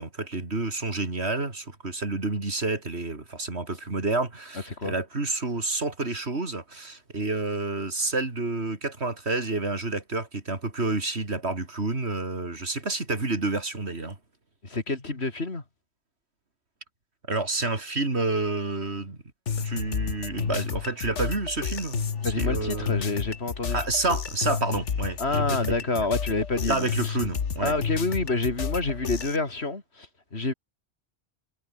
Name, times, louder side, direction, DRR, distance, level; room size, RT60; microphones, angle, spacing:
voice 1, 0.0-14.2 17.3-19.2 19.6-22.9 23.7-26.1 26.7-27.7, right 3 dB, 65° right, 3.7 m, -29 dB
voice 2, 14.6-15.6 22.2-23.8 25.2-27.2 27.6-30.1 30.3-30.5, left 3 dB, 65° left, 3.6 m, -28 dB
sound 1, 19.5-29.4, left 6 dB, 85° left, 1.7 m, -31 dB
omnidirectional pair, 1.2 m